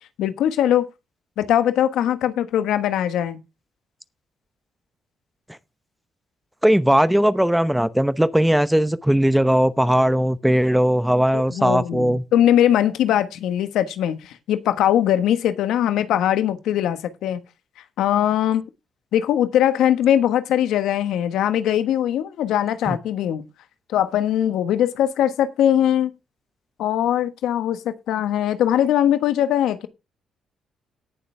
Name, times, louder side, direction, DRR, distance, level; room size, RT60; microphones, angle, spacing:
voice 1, 0.2-0.9 1.4-3.4 11.3-17.4 18.0-18.6 19.1-23.4 23.9-26.1 26.8-29.9, left 11 dB, 85° left, 1.4 m, -21 dB
voice 2, 6.6-12.2 22.9-23.0, equal, 5° right, 0.8 m, -18 dB
17.5 x 6.9 x 3.4 m
cardioid pair, 90°, 0 cm